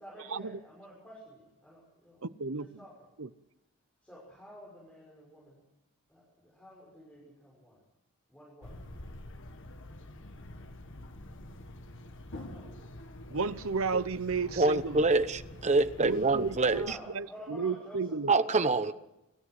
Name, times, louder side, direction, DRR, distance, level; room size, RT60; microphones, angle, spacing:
voice 1, 0.0-2.9 4.0-5.6 6.1-7.8 8.3-8.7 12.3-12.7 16.4-18.8, equal, 5° left, 6.2 m, -51 dB
voice 2, 2.2-2.7 3.2-3.3 13.3-15.0 16.0-18.3, right 4 dB, 65° right, 0.8 m, -33 dB
sound 1, 8.6-17.0, left 1 dB, 60° left, 1.7 m, -46 dB
voice 3, 14.6-16.8 18.3-18.9, right 3 dB, 30° right, 1.0 m, -26 dB
26.5 x 14.0 x 7.8 m
head